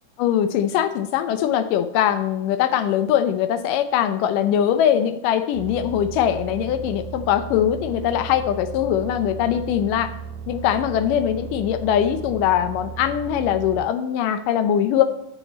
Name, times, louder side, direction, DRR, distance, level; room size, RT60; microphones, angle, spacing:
voice 1, 0.2-10.1 10.5-15.0, left 10 dB, 85° left, 9 dB, 2.3 m, -21 dB
sound 1, 5.5-13.9, right 6 dB, 85° right, 2.3 m, -36 dB
11.0 x 7.2 x 4.2 m, 0.80 s
omnidirectional pair, 3.7 m